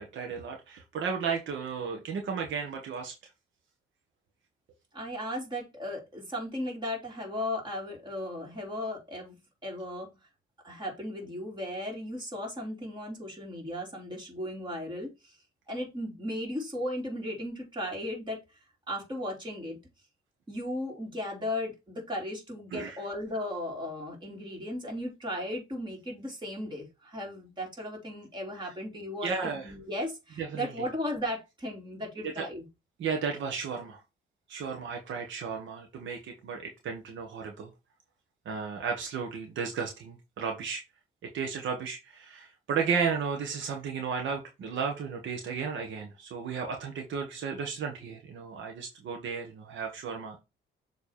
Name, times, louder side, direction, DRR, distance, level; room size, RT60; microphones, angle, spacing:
voice 1, 0.0-3.2 22.7-23.0 29.2-29.7 30.4-30.8 32.2-32.5 33.0-34.0 34.5-37.7 38.4-40.8 41.3-50.4, right 6 dB, 70° right, 1.4 m, -34 dB
voice 2, 4.9-10.2 10.6-15.3 15.7-18.4 18.9-19.8 20.5-32.7, left 1 dB, 25° right, 3.3 m, -36 dB
7.0 x 3.4 x 4.3 m
cardioid pair, 90°, 20 cm